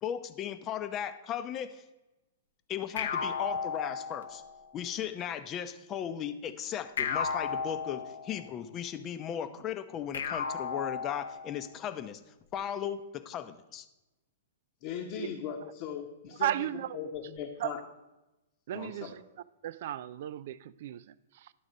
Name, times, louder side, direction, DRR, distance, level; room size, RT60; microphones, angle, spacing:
voice 1, 0.0-1.8 2.7-4.4 4.7-12.2 12.5-13.9, left 9 dB, 30° left, 0.7 m, -36 dB
sound 1, 3.0-4.6 7.0-8.6 10.1-11.6, left 5 dB, 80° left, 0.8 m, -34 dB
voice 2, 14.8-16.7 16.9-17.8 18.7-19.1, left 8 dB, 50° left, 1.0 m, -39 dB
voice 3, 16.4-17.0 17.6-17.8 18.7-19.1 19.6-21.5, right 12 dB, 60° right, 0.4 m, -35 dB
11.0 x 4.0 x 6.4 m
hypercardioid pair, 120°, 0 cm